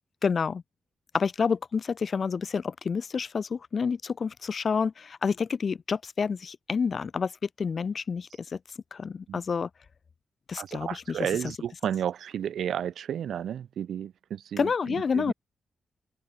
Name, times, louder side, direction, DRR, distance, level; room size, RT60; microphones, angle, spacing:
voice 1, 0.2-0.6 1.1-8.6 8.9-9.7 10.5-11.2 14.6-15.3, left 5 dB, 40° left, 6.5 m, -29 dB
voice 2, 10.6-15.3, right 9 dB, 75° right, 6.9 m, -32 dB
open air
wide cardioid pair, 175°, 0 cm